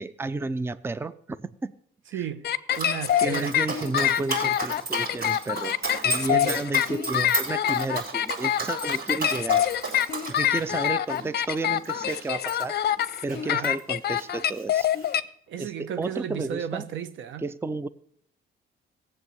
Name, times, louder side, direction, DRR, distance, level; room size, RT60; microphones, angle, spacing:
voice 1, 0.0-1.7 2.1-2.2 3.2-9.6 10.3-12.8 13.2-14.9 15.6-16.8 17.4-17.9, right 3 dB, 10° right, 0.5 m, -32 dB
voice 2, 2.1-2.4 2.8-3.5 6.2-6.6 13.4-13.7 15.5-17.4, right 9 dB, 80° right, 1.1 m, -34 dB
sound 1, 2.4-15.2, left 10 dB, 55° left, 0.6 m, -25 dB
Dog, 2.7-13.8 14.1-15.2, right 3 dB, 55° right, 6.5 m, -34 dB
17.0 x 7.6 x 8.0 m
cardioid pair, 90°, 20 cm